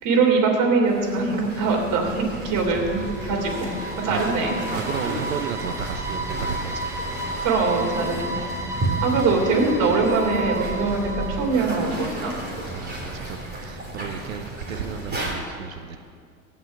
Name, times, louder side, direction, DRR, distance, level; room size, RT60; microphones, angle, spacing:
voice 1, 0.0-4.6 7.4-8.4 8.7-12.4, right 3 dB, 50° right, 1 dB, 3.2 m, -22 dB
sound 1, 0.8-15.3, right 2 dB, 25° right, 3.5 m, -33 dB
sound 2, 2.3-12.3, right 2 dB, 5° right, 1.3 m, -33 dB
voice 2, 4.1-4.4 4.7-7.0 12.7-13.4 13.6-16.0, right 7 dB, 80° right, 8 dB, 0.8 m, -33 dB
15.5 x 5.5 x 8.9 m, 2.2 s
hypercardioid pair, 80°, 40 cm